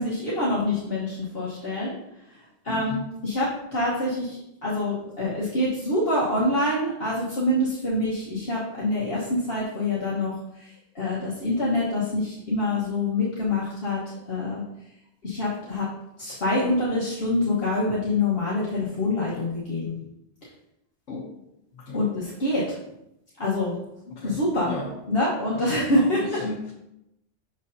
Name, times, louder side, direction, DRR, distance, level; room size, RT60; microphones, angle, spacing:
voice 1, 0.0-1.9 2.6-14.0 14.3-14.6 15.2-15.9 16.2-19.9 21.9-22.6 23.4-23.7 24.2-24.7 25.1-26.2, left 1 dB, 55° left, -8 dB, 1.5 m, -26 dB
voice 2, 2.7-3.0 21.1-21.3 21.7-22.0 24.1-24.4 24.6-24.9 25.5-26.7, left 2 dB, 75° left, -2 dB, 1.2 m, -35 dB
6.4 x 6.3 x 2.7 m, 0.85 s
omnidirectional pair, 1.2 m